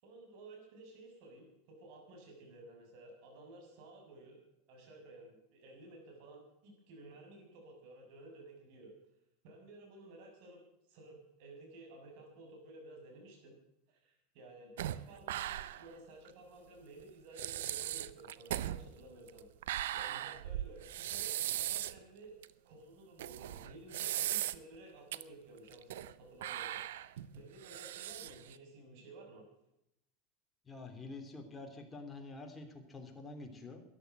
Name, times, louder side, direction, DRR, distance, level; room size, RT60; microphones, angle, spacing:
voice 1, 0.0-4.4 4.7-8.9 9.4-10.6 10.9-13.6 13.9-19.5 19.9-22.4 22.6-29.4, right 2 dB, 60° right, 1 dB, 7.2 m, -54 dB
sound 1, 14.8-15.9 16.3-16.4 17.0-17.1 17.4-22.0 22.4-22.5 23.2-24.8 25.1-25.2 25.7-26.1 26.4-28.6, right 13 dB, 80° right, 0.6 m, -38 dB
voice 2, 30.7-33.8, left 3 dB, 15° left, 3 dB, 3.2 m, -47 dB
13.5 x 11.0 x 8.0 m, 0.83 s
supercardioid pair, 115°, 0 cm